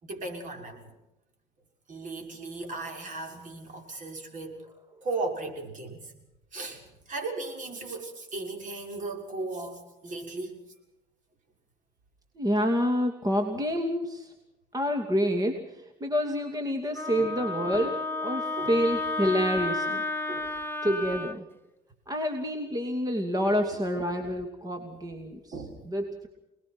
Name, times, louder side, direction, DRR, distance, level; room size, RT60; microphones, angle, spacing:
voice 1, 0.0-0.9 1.9-4.6 5.0-6.1 6.5-10.6 17.2-17.4 18.6-18.8 20.3-20.6 23.4-23.8 24.9-25.1 25.5-25.8, right 3 dB, 50° right, 3 dB, 6.4 m, -37 dB
voice 2, 12.4-14.3 14.7-15.6 16.0-20.0 20.8-21.4 22.1-25.5 25.9-26.3, equal, 20° right, 4 dB, 2.6 m, -28 dB
Wind instrument woodwind instrument, 16.9-21.3, left 3 dB, 10° left, 1.4 m, -32 dB
28.0 x 20.0 x 6.2 m, 0.95 s
cardioid pair, 110°, 17 cm